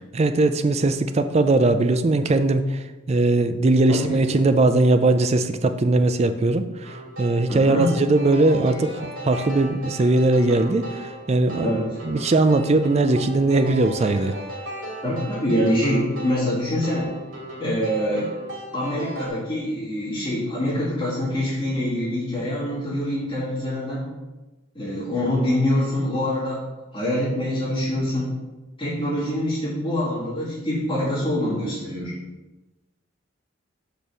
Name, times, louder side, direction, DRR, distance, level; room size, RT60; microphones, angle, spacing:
voice 1, 0.1-11.7 12.0-14.3, right 2 dB, 35° right, 9 dB, 0.4 m, -20 dB
voice 2, 3.9-4.2 7.5-7.9 11.6-11.8 15.0-17.1 17.6-18.3 18.7-24.1 24.7-26.6 26.9-28.3 28.8-32.1, left 1 dB, 25° left, -7 dB, 2.1 m, -25 dB
sound 1, 6.8-19.3, right 1 dB, 85° right, 2.2 m, -36 dB
5.2 x 4.3 x 6.1 m, 1.1 s
head